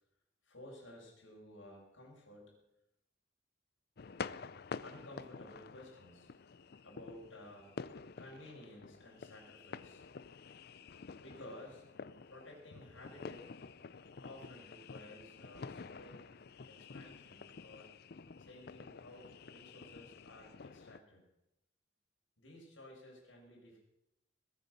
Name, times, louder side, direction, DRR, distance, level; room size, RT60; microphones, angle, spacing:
voice 1, 0.4-2.6 4.8-6.3 6.8-7.7 8.2-10.1 11.2-11.8 12.3-13.5 14.2-16.3 16.7-18.0 18.4-21.2 22.4-23.8, left 1 dB, 90° left, -1 dB, 6.3 m, -54 dB
sound 1, 4.0-21.0, left 5 dB, 55° left, 0.5 m, -49 dB
21.0 x 8.4 x 6.8 m, 0.87 s
head